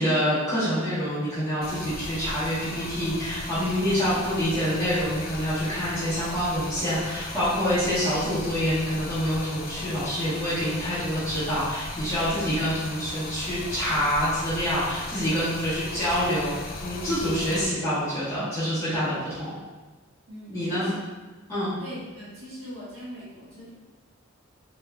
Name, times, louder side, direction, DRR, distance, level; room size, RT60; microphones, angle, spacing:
voice 1, 0.0-19.5 20.5-20.9 21.5-21.7, equal, 15° left, -16 dB, 1.0 m, -26 dB
Stream, 1.6-17.7, left 2 dB, 45° left, 0.4 m, -37 dB
voice 2, 20.3-21.0 21.8-23.7, equal, 80° right, -9 dB, 1.3 m, -41 dB
3.4 x 3.1 x 2.2 m, 1.2 s
head